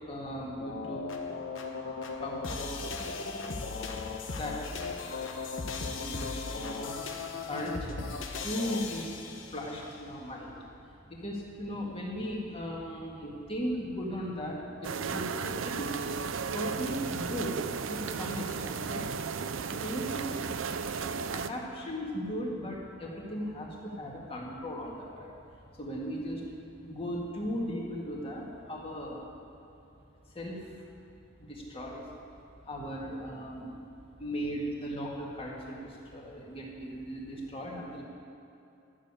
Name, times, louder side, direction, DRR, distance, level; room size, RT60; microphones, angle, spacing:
voice 1, 0.1-1.1 1.8-2.8 4.3-5.5 5.8-8.1 8.4-9.2 9.5-10.7 11.1-16.0 16.5-17.6 17.9-19.0 19.6-20.4 21.0-25.3 25.8-29.3 30.3-30.8 31.4-32.1 32.6-33.8 34.2-38.0, equal, 30° left, -3 dB, 2.2 m, -37 dB
sound 1, 0.6-9.8, left 4 dB, 75° left, 1.0 m, -37 dB
sound 2, 14.8-21.5, right 5 dB, 80° right, 0.5 m, -34 dB
12.5 x 7.3 x 8.3 m, 2.8 s
head